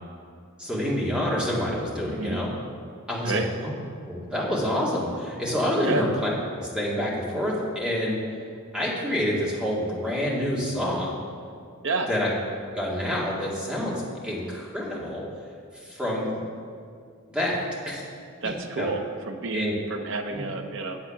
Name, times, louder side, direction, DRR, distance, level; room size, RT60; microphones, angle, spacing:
voice 1, 0.6-2.5 3.1-3.7 4.0-6.3 6.6-8.2 8.7-11.2 12.1-12.3 12.7-15.2 15.7-16.4 17.3-17.6 17.9-18.0 18.8-18.9 19.5-19.7 20.3-20.4, left 1 dB, 5° right, -6 dB, 2.1 m, -27 dB
voice 2, 2.1-2.4 3.2-3.5 5.8-6.1 11.8-12.1 18.4-21.0, right 3 dB, 65° right, 5 dB, 0.8 m, -30 dB
8.8 x 7.7 x 5.9 m, 2.3 s
head